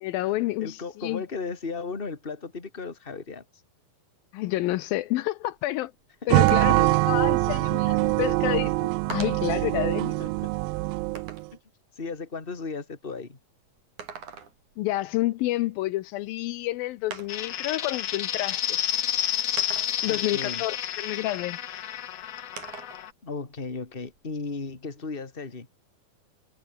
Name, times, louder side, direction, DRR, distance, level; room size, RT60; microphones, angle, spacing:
voice 1, 0.0-1.2 4.3-5.9 6.3-10.2 14.8-18.8 20.0-21.6, left 16 dB, 80° left, 2.5 m, -29 dB
voice 2, 0.6-3.4 6.2-6.3 10.2-10.3 12.0-13.4 20.0-20.6 23.2-25.7, left 4 dB, 15° left, 2.6 m, -35 dB
sound 1, 5.6-5.7 6.0-6.1 6.5-7.2 8.3-8.4 9.1-9.6 10.2-11.6 13.8-14.8 16.3-16.4 17.1-17.6 18.6-18.7 19.6-20.2 22.6-23.0 23.4-24.5, right 6 dB, 55° right, 4.7 m, -42 dB
sound 2, 6.3-11.4, right 22 dB, 85° right, 2.3 m, -23 dB
sound 3, 17.3-23.1, left 11 dB, 60° left, 1.9 m, -30 dB
omnidirectional pair, 4.2 m